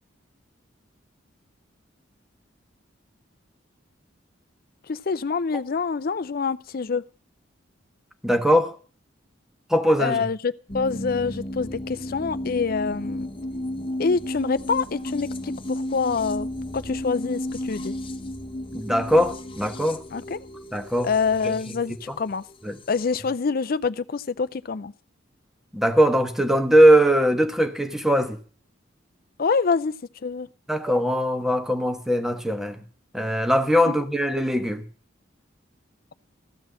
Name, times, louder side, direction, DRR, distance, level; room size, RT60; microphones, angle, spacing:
voice 1, 4.9-7.0 10.0-13.3 14.0-16.5 16.7-18.0 20.1-20.4 21.0-22.4 22.9-24.9 29.4-29.9 30.2-30.5 33.9-34.0, left 5 dB, 50° left, 0.5 m, -26 dB
voice 2, 8.2-8.8 9.7-10.2 18.7-20.0 20.7-21.1 21.4-21.5 22.1-22.2 22.6-22.8 25.7-28.4 30.7-32.8 33.1-34.9, equal, ahead, 1.1 m, -20 dB
sound 1, 10.7-23.2, left 1 dB, 30° left, 1.1 m, -33 dB
14.5 x 6.2 x 7.5 m
head